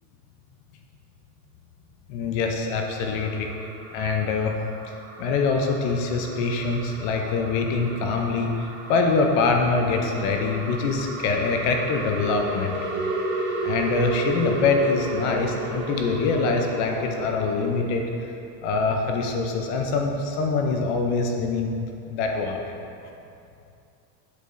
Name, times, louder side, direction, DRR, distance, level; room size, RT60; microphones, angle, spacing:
voice 1, 2.1-3.5 3.9-4.5 5.2-12.8 13.6-18.0 18.6-22.7, left 4 dB, 45° left, 2 dB, 0.5 m, -24 dB
sound 1, 2.8-18.0, right 1 dB, 25° right, 0.5 m, -33 dB
8.2 x 4.6 x 2.5 m, 2.6 s
supercardioid pair, 150°, 49 cm